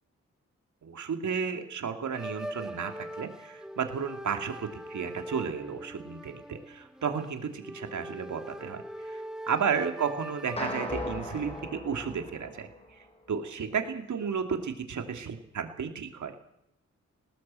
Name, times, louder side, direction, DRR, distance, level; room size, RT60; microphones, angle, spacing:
voice 1, 0.8-16.4, right 6 dB, 80° right, 6 dB, 2.8 m, -33 dB
sound 1, 2.1-11.7, right 1 dB, ahead, 0.9 m, -42 dB
Trash bin percussion with reverb, 10.6-13.0, left 1 dB, 20° left, 5.2 m, -37 dB
19.5 x 17.5 x 7.8 m, 0.80 s
wide cardioid pair, 115°, 29 cm